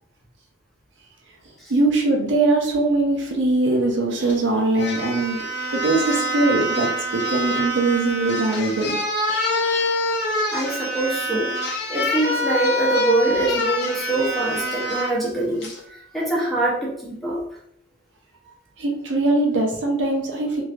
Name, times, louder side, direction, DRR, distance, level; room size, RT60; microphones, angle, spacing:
voice 1, 1.7-5.4 5.7-8.9 9.3-9.9 18.8-20.6, right 2 dB, 60° right, 1 dB, 0.6 m, -21 dB
sound 1, 4.3-4.4 4.8-15.1 15.6-15.8, left 1 dB, 55° left, 0.8 m, -25 dB
voice 2, 10.5-11.5 11.9-17.4, right 2 dB, ahead, -5 dB, 0.7 m, -24 dB
3.1 x 2.6 x 2.4 m, 0.70 s
head